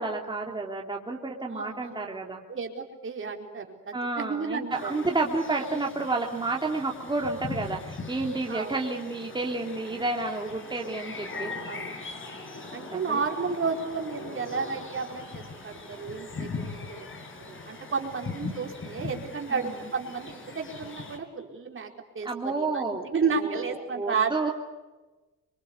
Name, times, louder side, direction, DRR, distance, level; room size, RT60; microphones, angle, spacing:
voice 1, 0.0-2.4 3.9-11.6 12.9-13.2 19.5-19.7 22.2-23.1 23.7-24.5, right 3 dB, 15° right, 0 dB, 3.1 m, -30 dB
voice 2, 1.5-2.1 2.5-4.9 8.5-8.8 11.7-11.9 12.7-17.1 17.4-21.9 22.1-24.5, right 5 dB, 40° right, 3 dB, 4.4 m, -32 dB
sound 1, 4.7-21.2, left 3 dB, 40° left, 5.9 m, -40 dB
24.5 x 23.0 x 8.3 m, 1.2 s
cardioid pair, 90°, 30 cm